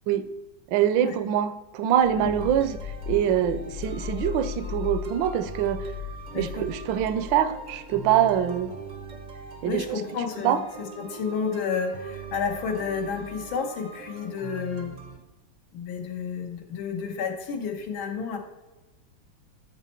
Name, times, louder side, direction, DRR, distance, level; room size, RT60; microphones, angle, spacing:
voice 1, 0.7-2.8 3.1-5.8 6.4-8.7 9.6-10.0 10.4-10.6, right 10 dB, 75° right, 13 dB, 1.3 m, -24 dB
sound 1, 2.0-8.7, left 10 dB, 70° left, 1.2 m, -38 dB
sound 2, 2.2-15.2, right 4 dB, 50° right, 0.5 m, -42 dB
voice 2, 6.3-6.7 9.6-14.9 15.7-18.4, left 6 dB, 90° left, 4 dB, 2.0 m, -31 dB
13.0 x 4.3 x 4.3 m, 1.1 s
omnidirectional pair, 2.1 m